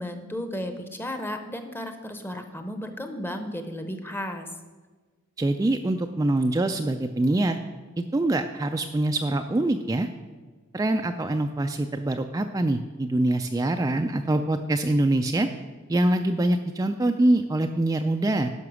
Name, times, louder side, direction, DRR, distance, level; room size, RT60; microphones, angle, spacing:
voice 1, 0.0-4.5, left 1 dB, 10° left, 7 dB, 0.7 m, -34 dB
voice 2, 5.4-7.6 8.0-10.1 10.7-15.5 15.9-18.5, right 1 dB, 15° right, 5 dB, 0.3 m, -24 dB
10.5 x 5.9 x 6.2 m, 1.4 s
head